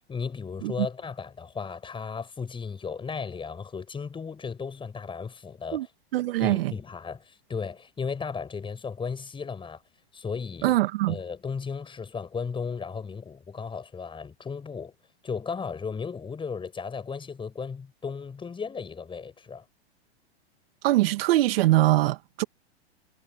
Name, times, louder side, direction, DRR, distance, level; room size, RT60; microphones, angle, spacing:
voice 1, 0.1-5.9 6.4-9.8 10.1-10.8 11.1-14.9 15.2-19.6, left 5 dB, 15° left, 6.0 m, -35 dB
voice 2, 6.1-6.7 10.6-11.2 20.8-22.4, right 16 dB, 60° right, 1.8 m, -23 dB
hypercardioid pair, 115°, 32 cm